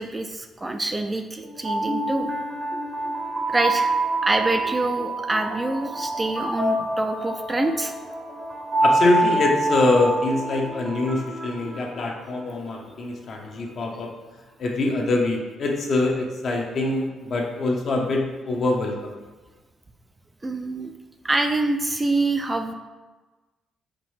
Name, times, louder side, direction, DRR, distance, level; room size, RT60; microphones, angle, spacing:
voice 1, 0.0-2.3 3.5-4.0 4.2-7.9 20.4-20.9 21.2-22.7, right 2 dB, 20° right, 5 dB, 0.3 m, -26 dB
sound 1, 1.4-12.5, right 2 dB, 40° right, 0.7 m, -26 dB
voice 2, 8.8-14.1 14.6-19.2, left 2 dB, 55° left, 0 dB, 0.8 m, -24 dB
5.1 x 2.7 x 3.2 m, 1.2 s
cardioid pair, 90°, 0 cm